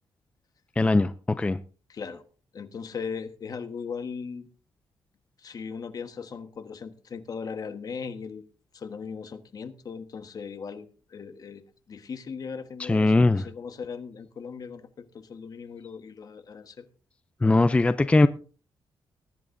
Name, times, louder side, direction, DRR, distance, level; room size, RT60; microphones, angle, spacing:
voice 1, 0.8-1.6 12.8-13.5 17.4-18.3, left 2 dB, 15° left, 0.4 m, -20 dB
voice 2, 1.9-2.2 2.5-4.5 5.4-8.5 8.7-11.6 11.9-16.9, left 5 dB, 45° left, 1.3 m, -38 dB
20.5 x 11.0 x 2.6 m
cardioid pair, 120°, 9 cm